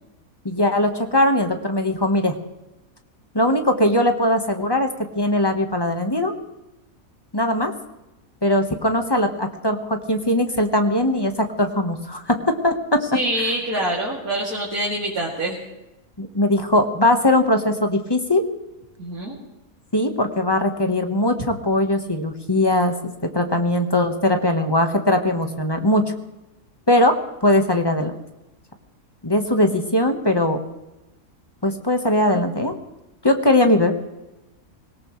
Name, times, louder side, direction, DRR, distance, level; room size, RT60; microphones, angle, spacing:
voice 1, 0.4-2.3 3.3-4.9 5.1-6.3 7.3-7.7 8.4-12.8 16.2-18.4 19.9-26.1 26.9-28.1 29.2-30.6 31.6-32.7 33.2-33.9, left 1 dB, 20° left, 5 dB, 1.3 m, -20 dB
voice 2, 13.1-15.6 19.0-19.4, right 1 dB, 90° right, -6 dB, 3.2 m, -25 dB
24.5 x 18.0 x 3.2 m, 0.97 s
omnidirectional pair, 1.5 m